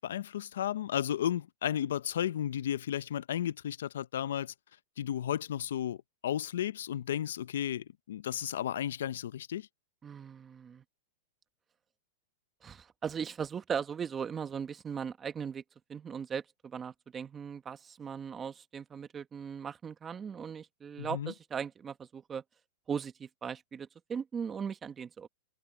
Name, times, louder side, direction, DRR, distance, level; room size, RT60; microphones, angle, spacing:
voice 1, 0.0-4.5 5.0-9.7 21.0-21.3, left 10 dB, 80° left, 0.6 m, -33 dB
voice 2, 10.0-10.8 12.6-15.6 15.9-22.4 22.9-25.3, right 7 dB, 20° right, 1.4 m, -38 dB
supercardioid pair, 145°, 0 cm